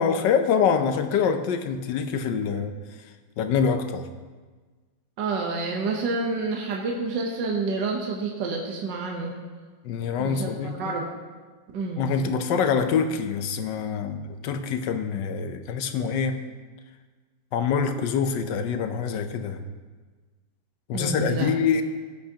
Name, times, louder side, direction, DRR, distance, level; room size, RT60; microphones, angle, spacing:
voice 1, 0.0-2.8 3.4-4.1 9.8-10.9 12.0-16.4 17.5-19.6 20.9-21.8, left 6 dB, 75° left, 9 dB, 1.3 m, -25 dB
voice 2, 5.2-9.3 10.2-11.1 11.7-12.1 20.9-21.5, right 3 dB, 70° right, -1 dB, 1.6 m, -29 dB
16.5 x 8.1 x 2.9 m, 1.4 s
omnidirectional pair, 2.0 m